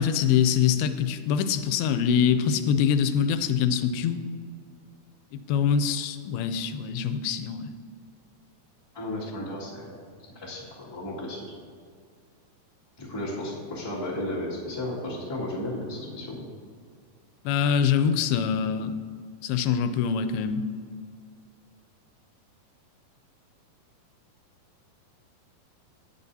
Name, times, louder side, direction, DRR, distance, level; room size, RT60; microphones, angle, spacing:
voice 1, 0.0-4.2 5.5-7.7 17.5-19.0 19.4-20.7, left 7 dB, 90° left, 10 dB, 2.5 m, -24 dB
voice 2, 8.9-10.0 10.3-11.5 13.0-16.5, left 1 dB, 10° left, -7 dB, 1.3 m, -34 dB
18.0 x 7.1 x 2.7 m, 2.1 s
omnidirectional pair, 4.3 m